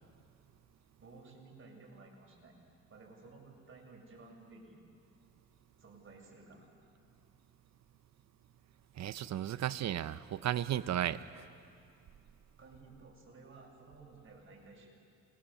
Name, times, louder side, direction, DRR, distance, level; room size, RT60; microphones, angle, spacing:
voice 1, 1.0-2.5 2.9-4.8 5.8-6.7 12.6-14.9, right 3 dB, 45° right, -1 dB, 7.1 m, -55 dB
voice 2, 9.0-11.5, right 11 dB, 60° right, 14 dB, 0.9 m, -34 dB
29.5 x 22.0 x 7.2 m, 2.5 s
cardioid pair, 90°, 30 cm